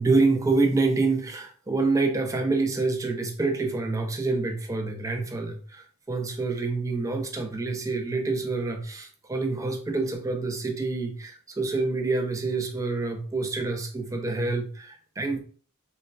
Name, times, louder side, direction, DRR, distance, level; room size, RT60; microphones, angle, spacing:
voice 1, 0.0-15.4, right 3 dB, 15° right, 4 dB, 0.3 m, -27 dB
3.0 x 2.1 x 2.4 m, 0.43 s
head